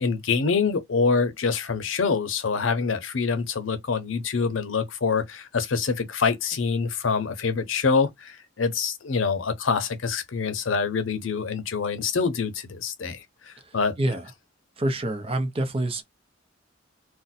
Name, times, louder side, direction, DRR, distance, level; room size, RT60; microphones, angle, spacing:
voice 1, 0.0-13.9, left 5 dB, 90° left, 0.6 m, -25 dB
voice 2, 14.8-16.0, right 1 dB, 30° right, 0.6 m, -26 dB
2.6 x 2.1 x 4.0 m
head